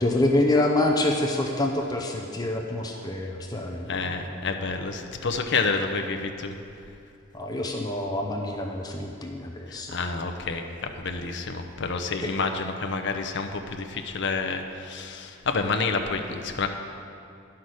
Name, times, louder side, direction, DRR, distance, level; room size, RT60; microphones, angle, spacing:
voice 1, 0.0-4.4 7.3-10.0 12.2-12.3, left 1 dB, 20° left, 1 dB, 0.6 m, -26 dB
voice 2, 3.9-6.5 9.7-16.7, left 4 dB, 55° left, 5 dB, 0.7 m, -29 dB
11.0 x 5.8 x 6.4 m, 2.6 s
head